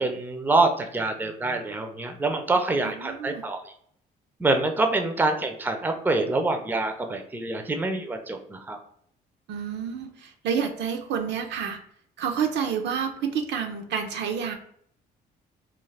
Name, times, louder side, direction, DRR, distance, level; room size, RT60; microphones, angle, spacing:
voice 1, 0.0-3.6 4.4-8.8, right 2 dB, 10° right, 5 dB, 0.4 m, -25 dB
voice 2, 2.8-3.4 9.5-11.8 12.2-14.6, right 7 dB, 70° right, 5 dB, 0.5 m, -29 dB
2.4 x 2.4 x 3.2 m, 0.65 s
supercardioid pair, 75°, 19 cm